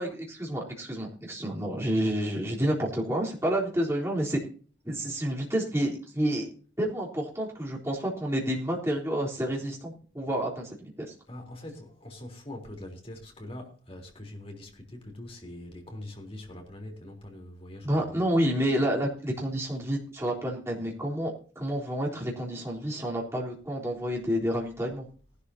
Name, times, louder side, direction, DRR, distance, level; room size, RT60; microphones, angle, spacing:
voice 1, 0.0-4.4 4.8-6.5 6.8-11.1 17.8-25.1, equal, 15° right, 3.7 m, -29 dB
voice 2, 11.3-18.2, left 1 dB, 30° left, 3.6 m, -43 dB
18.5 x 12.0 x 2.8 m
head